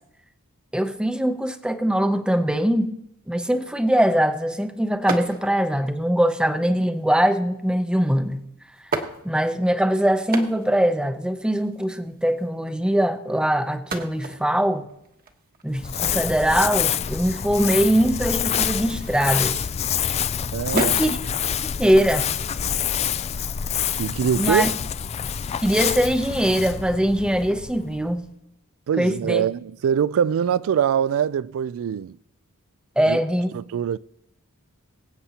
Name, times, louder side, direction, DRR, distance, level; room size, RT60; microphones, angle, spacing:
voice 1, 0.7-2.9 3.3-8.4 9.2-14.9 15.6-19.6 20.7-21.2 21.8-22.3 24.4-24.7 25.6-28.2 29.0-29.4 33.0-33.5, equal, 5° right, 0.7 m, -22 dB
sound 1, 5.1-5.7 6.5-7.0 8.1-8.2 8.7-9.7 10.1-10.9 11.2-11.3 11.4-12.5 13.7-19.9 20.3-21.2 21.6-23.4, right 3 dB, 40° right, 1.2 m, -35 dB
Crumpling crinkling, 15.7-28.2, left 9 dB, 30° left, 0.3 m, -27 dB
voice 2, 20.5-20.9 24.0-24.7 28.9-32.2 33.1-33.2 33.5-34.0, right 8 dB, 65° right, 0.3 m, -23 dB
23.5 x 8.2 x 2.9 m
head